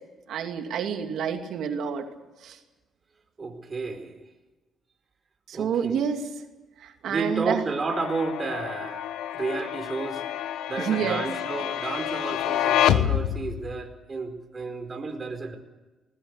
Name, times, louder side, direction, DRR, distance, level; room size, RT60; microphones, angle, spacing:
voice 1, 0.3-2.0 2.4-2.6 5.5-6.2 6.8-7.6 10.8-11.2, right 7 dB, 75° right, 5 dB, 2.7 m, -28 dB
voice 2, 3.4-4.2 5.5-6.0 7.0-9.1 9.3-10.2 10.7-15.6, right 3 dB, 35° right, 5 dB, 4.6 m, -32 dB
sound 1, 7.9-13.8, left 11 dB, 90° left, 1.1 m, -28 dB
20.0 x 20.0 x 8.2 m, 1.1 s
cardioid pair, 90°, 0 cm